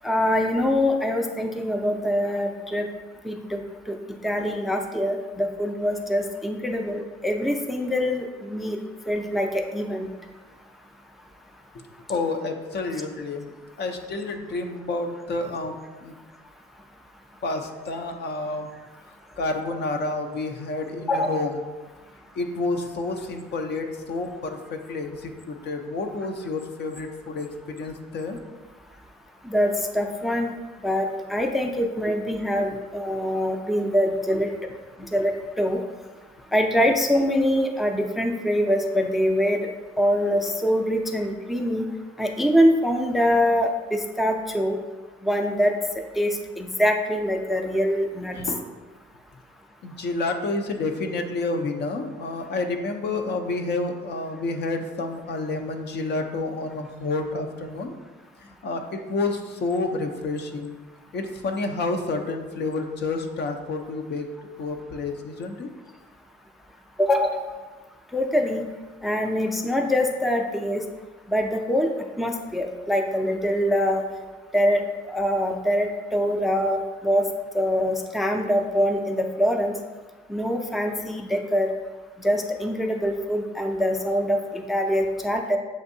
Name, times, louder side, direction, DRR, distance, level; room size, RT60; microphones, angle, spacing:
voice 1, 0.0-2.9 3.2-4.0 4.2-8.8 9.1-10.1 21.1-21.4 29.5-30.5 30.8-34.5 35.1-35.8 36.5-39.6 40.0-41.9 42.2-44.8 45.2-45.7 46.2-48.4 67.0-67.4 68.1-68.7 69.0-70.8 71.3-71.9 72.2-74.0 74.5-74.8 75.1-77.2 77.5-79.7 80.3-81.7 82.2-85.6, equal, ahead, 3 dB, 0.4 m, -24 dB
voice 2, 12.1-13.5 13.8-16.1 17.4-18.7 19.4-21.6 22.4-28.4 34.3-34.4 48.3-48.6 49.8-58.0 58.6-60.8 61.1-65.7, left 3 dB, 60° left, 5 dB, 0.6 m, -29 dB
7.1 x 2.6 x 2.6 m, 1.3 s
cardioid pair, 90°, 20 cm